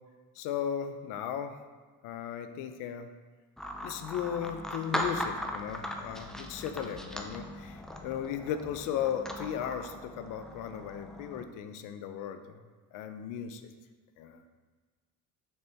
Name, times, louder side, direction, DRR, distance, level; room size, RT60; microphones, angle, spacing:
voice 1, 0.4-1.6 2.0-3.1 3.8-12.6 12.9-13.7 14.2-14.4, left 9 dB, 80° left, 9 dB, 0.6 m, -36 dB
sound 1, 3.6-11.4, equal, ahead, 0.4 m, -39 dB
sound 2, 4.9-10.2, left 3 dB, 35° left, 1.2 m, -53 dB
6.6 x 4.4 x 3.4 m, 1.4 s
cardioid pair, 115°, 31 cm